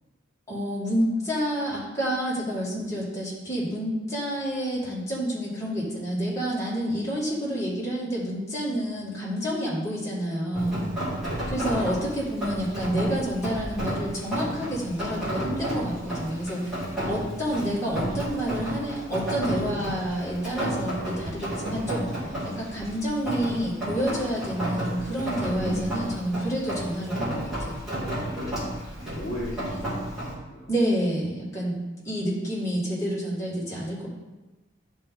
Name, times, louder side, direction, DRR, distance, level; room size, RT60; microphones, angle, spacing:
voice 1, 0.5-10.8 11.5-22.3 22.6-27.8 30.7-31.8 32.0-34.1, equal, 15° left, -8 dB, 1.9 m, -29 dB
Rain, 10.5-30.3, right 1 dB, 5° right, 2.3 m, -32 dB
voice 2, 11.1-11.5 17.1-17.5 28.5-30.7, left 1 dB, 35° left, -8 dB, 1.3 m, -39 dB
10.5 x 3.7 x 3.7 m, 1.1 s
head